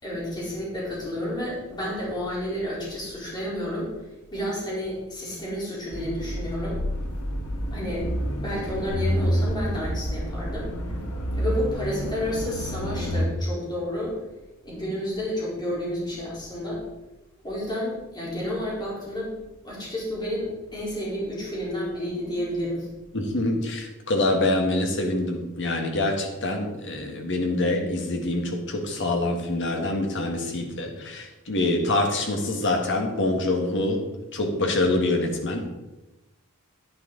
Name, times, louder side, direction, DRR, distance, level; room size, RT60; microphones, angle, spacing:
voice 1, 0.0-3.9 4.3-6.8 7.7-11.0 11.4-14.2 14.6-16.8 17.4-19.3 19.6-22.9, equal, 20° left, -6 dB, 4.1 m, -31 dB
sound 1, 5.9-13.3, equal, 80° left, 1.8 m, -28 dB
voice 2, 23.1-35.7, left 2 dB, 55° left, 3 dB, 1.8 m, -25 dB
10.5 x 9.7 x 4.0 m, 1.0 s
head